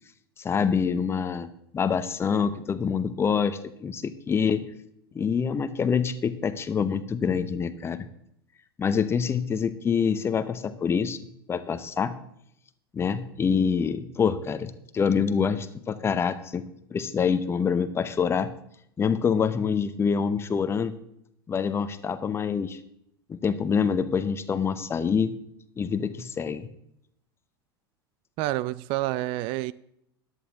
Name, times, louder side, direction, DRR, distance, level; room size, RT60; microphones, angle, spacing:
voice 1, 0.4-1.5 1.7-4.6 5.1-8.1 8.8-11.2 11.5-12.1 12.9-16.6 16.9-18.5 19.0-20.9 21.5-22.8 23.3-25.3 25.8-26.7, left 6 dB, 20° left, 13 dB, 0.9 m, -26 dB
voice 2, 28.4-29.7, right 16 dB, 40° right, 20 dB, 0.4 m, -28 dB
14.0 x 11.0 x 3.7 m, 0.75 s
figure-of-eight pair, 80°, 13 cm